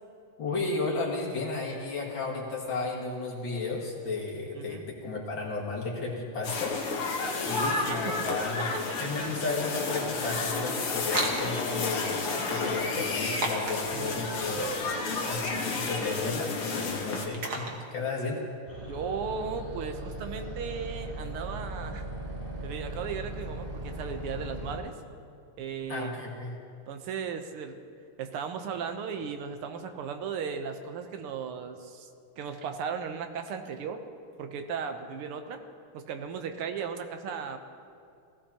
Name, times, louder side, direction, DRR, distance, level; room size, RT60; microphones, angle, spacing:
voice 1, 0.4-6.8 7.4-8.6 9.0-14.7 15.2-18.4 25.9-26.5, left 3 dB, 60° left, -3 dB, 2.6 m, -33 dB
voice 2, 4.6-4.9 7.4-8.4 13.9-14.3 18.9-22.0 22.6-24.9 25.6-26.1 26.9-27.8 28.2-32.1 32.4-34.0 34.4-35.6 35.9-37.6, right 6 dB, 90° right, 6 dB, 1.8 m, -36 dB
sound 1, 6.4-17.3, left 3 dB, 85° left, 2.2 m, -31 dB
sound 2, 11.0-18.3, right 2 dB, 50° right, 1.8 m, -39 dB
sound 3, 18.7-24.8, right 1 dB, 30° right, 2.7 m, -38 dB
18.0 x 15.5 x 2.9 m, 2.4 s
omnidirectional pair, 2.4 m